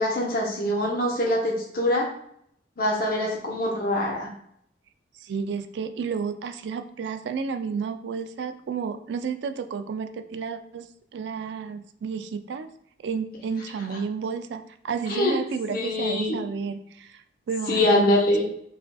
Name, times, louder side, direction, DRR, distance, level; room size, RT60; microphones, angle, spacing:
voice 1, 0.0-2.1 2.8-4.3 15.1-15.4 15.7-16.4 17.7-18.5, left 1 dB, 55° left, -2 dB, 0.7 m, -24 dB
voice 2, 5.2-12.7 13.0-17.2 17.5-18.1, right 6 dB, 70° right, 9 dB, 0.3 m, -31 dB
4.8 x 2.5 x 2.3 m, 0.69 s
head